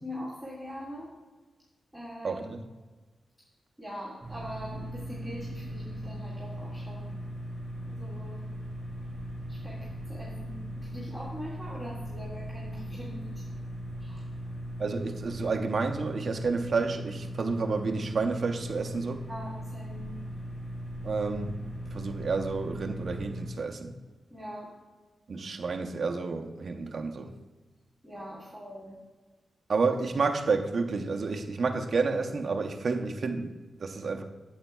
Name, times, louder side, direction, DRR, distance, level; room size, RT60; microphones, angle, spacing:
voice 1, 0.0-1.1 1.9-2.6 3.8-7.1 7.9-8.4 9.5-13.5 14.0-14.2 19.3-20.1 24.3-24.7 28.0-28.9, equal, 5° left, -10 dB, 1.8 m, -42 dB
voice 2, 2.2-2.6 14.8-19.2 21.0-21.6 21.9-23.9 25.3-27.3 29.7-34.2, right 4 dB, 40° right, 4 dB, 0.6 m, -30 dB
sound 1, 4.2-23.5, equal, 15° right, 3.0 m, -39 dB
13.0 x 7.9 x 2.3 m, 1.3 s
wide cardioid pair, 175°, 0 cm